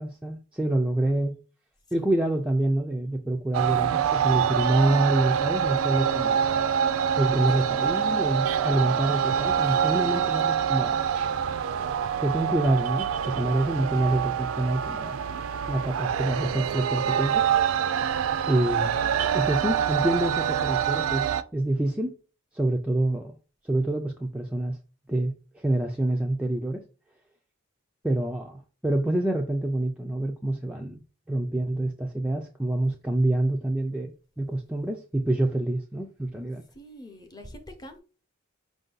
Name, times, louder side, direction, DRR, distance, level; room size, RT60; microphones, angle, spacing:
voice 1, 0.0-1.4 1.9-6.4 7.2-11.0 12.2-15.2 15.7-17.4 18.5-18.9 19.3-22.1 22.5-23.4 23.6-24.8 25.1-26.8 28.0-31.0 31.3-36.6, right 1 dB, 5° right, 0.3 m, -27 dB
sound 1, 3.5-21.4, right 8 dB, 90° right, 0.4 m, -26 dB
voice 2, 7.8-8.8 14.0-14.3 36.8-38.0, left 2 dB, 20° left, 0.7 m, -44 dB
5.1 x 2.6 x 3.8 m
head